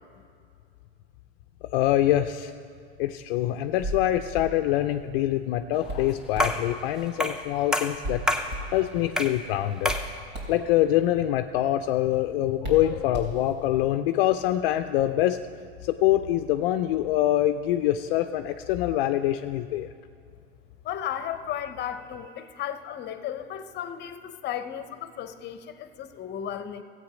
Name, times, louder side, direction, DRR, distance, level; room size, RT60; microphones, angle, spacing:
voice 1, 1.7-2.5 3.0-8.2 8.7-9.9 10.5-15.4 15.8-19.9, left 13 dB, 60° left, 8 dB, 0.5 m, -24 dB
Hands, 3.6-13.8, right 1 dB, 60° right, 3.6 m, -39 dB
sound 1, 6.4-6.7 7.2-7.5 7.7-8.5 9.2-9.4 9.9-10.1, left 1 dB, ahead, 0.7 m, -26 dB
voice 2, 20.8-26.8, left 9 dB, 35° left, 10 dB, 0.8 m, -34 dB
14.0 x 8.2 x 5.0 m, 2.3 s
hypercardioid pair, 95°, 31 cm